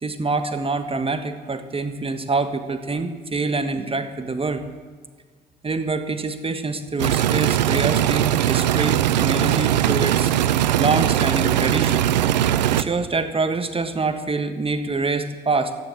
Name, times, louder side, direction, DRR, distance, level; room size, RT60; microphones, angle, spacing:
voice 1, 0.0-4.6 5.6-10.3 10.7-12.2 12.7-15.8, right 3 dB, 25° right, 9 dB, 1.4 m, -25 dB
sound 1, 7.0-12.8, right 12 dB, 85° right, 0.5 m, -20 dB
14.0 x 9.9 x 8.8 m, 1.5 s
hypercardioid pair, 50°, 21 cm